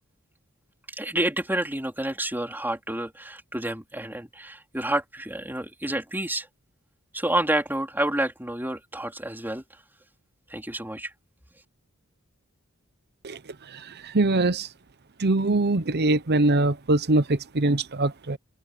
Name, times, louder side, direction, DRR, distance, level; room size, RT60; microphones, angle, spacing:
voice 1, 0.9-6.5 7.1-9.6 10.5-11.1, right 1 dB, 10° right, 3.7 m, -29 dB
voice 2, 14.1-14.7 15.2-18.4, right 2 dB, 50° right, 0.9 m, -22 dB
head